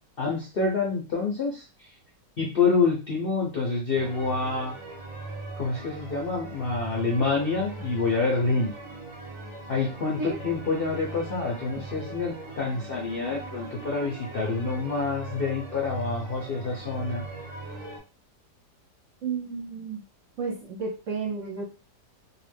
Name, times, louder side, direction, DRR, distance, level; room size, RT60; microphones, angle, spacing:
voice 1, 0.2-1.6 2.4-4.7 5.6-8.7 9.7-17.2, left 4 dB, 60° left, -2 dB, 0.6 m, -27 dB
sound 1, 4.0-18.0, right 2 dB, 35° right, 0.5 m, -40 dB
voice 2, 19.2-20.0 20.4-21.6, right 4 dB, 60° right, 0 dB, 0.8 m, -32 dB
2.8 x 2.4 x 3.4 m, 0.32 s
omnidirectional pair, 1.9 m